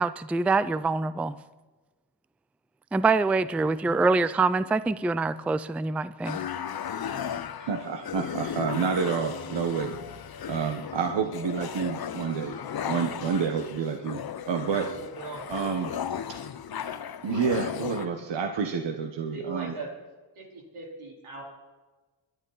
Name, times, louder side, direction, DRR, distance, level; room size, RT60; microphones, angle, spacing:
voice 1, 0.0-1.4 2.9-6.4, right 3 dB, 5° right, 15 dB, 0.3 m, -25 dB
voice 2, 3.6-4.1 14.9-15.5 17.9-18.2 19.3-19.9 20.4-21.4, right 3 dB, 90° right, -1 dB, 4.1 m, -40 dB
sound 1, 6.2-18.1, left 8 dB, 50° left, 0.8 m, -36 dB
voice 3, 7.6-9.9 10.5-12.5 12.9-14.9 15.5-15.9 17.2-19.7, right 6 dB, 60° right, 5 dB, 1.3 m, -29 dB
22.0 x 11.0 x 4.0 m, 1.2 s
cardioid pair, 100°, 48 cm